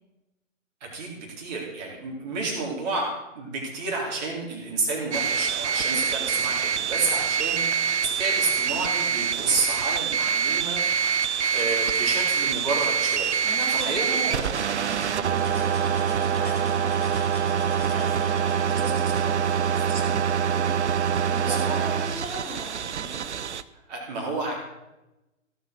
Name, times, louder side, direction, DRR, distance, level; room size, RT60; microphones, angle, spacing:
voice 1, 0.8-13.4 13.7-14.5 18.5-18.7 19.9-20.0 21.4-21.6 23.9-24.5, right 3 dB, 30° right, -2 dB, 4.0 m, -30 dB
sound 1, 5.1-23.6, right 7 dB, 60° right, 0.7 m, -25 dB
sound 2, 10.8-18.6, left 2 dB, 15° left, 3.5 m, -43 dB
voice 2, 13.4-23.3, right 1 dB, ahead, -9 dB, 2.4 m, -38 dB
17.0 x 5.7 x 6.5 m, 0.99 s
figure-of-eight pair, 135°, 40 cm